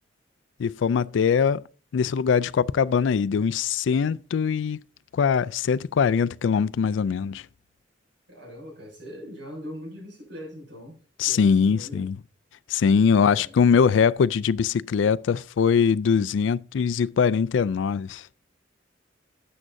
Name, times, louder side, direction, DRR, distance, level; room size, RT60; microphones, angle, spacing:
voice 1, 0.6-1.6 1.9-4.8 5.1-7.4 11.2-12.2 12.7-18.2, left 6 dB, 80° left, 0.3 m, -22 dB
voice 2, 8.3-11.0 11.2-12.1 13.1-13.5, equal, 75° right, 6.3 m, -41 dB
12.5 x 8.7 x 2.6 m
head